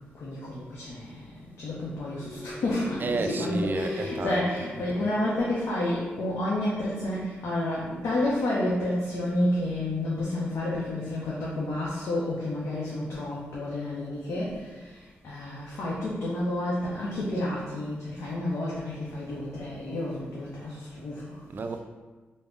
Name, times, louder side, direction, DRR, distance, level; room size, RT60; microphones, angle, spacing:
voice 1, 0.1-21.4, left 1 dB, 75° left, -6 dB, 0.6 m, -30 dB
sound 1, 2.1-5.9, left 2 dB, 15° left, 0.7 m, -38 dB
voice 2, 3.0-5.1 21.5-21.8, right 3 dB, 45° right, 6 dB, 0.3 m, -32 dB
3.3 x 2.1 x 3.6 m, 1.3 s
supercardioid pair, 45°, 5 cm